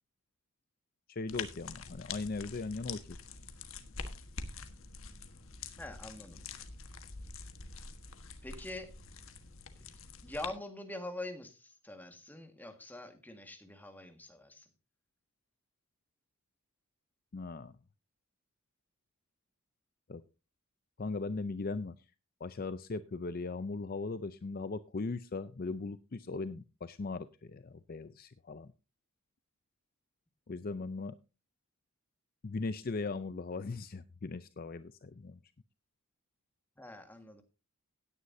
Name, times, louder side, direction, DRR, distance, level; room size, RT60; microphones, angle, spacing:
voice 1, 1.1-3.2 17.3-17.7 20.1-20.2 21.0-22.0 22.4-28.7 30.5-31.2 32.4-35.4, left 3 dB, 40° left, 13 dB, 0.5 m, -39 dB
sound 1, 1.3-10.5, left 5 dB, 65° left, 1.4 m, -46 dB
voice 2, 5.8-6.4 8.4-8.9 10.2-14.7 36.8-37.4, left 1 dB, 10° left, 6 dB, 1.8 m, -44 dB
17.0 x 9.7 x 2.7 m, 0.29 s
head